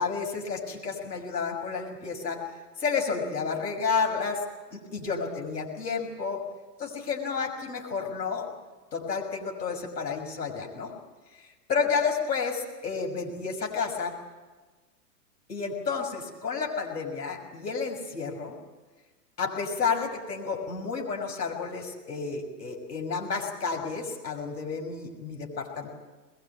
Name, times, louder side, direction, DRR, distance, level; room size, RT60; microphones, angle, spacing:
voice 1, 0.0-2.4 2.8-4.4 4.7-6.4 6.8-8.5 8.9-10.9 11.7-14.1 15.5-18.6 19.4-25.9, left 5 dB, 75° left, 2 dB, 6.2 m, -31 dB
22.0 x 21.5 x 8.5 m, 1.3 s
figure-of-eight pair, 100°, 49 cm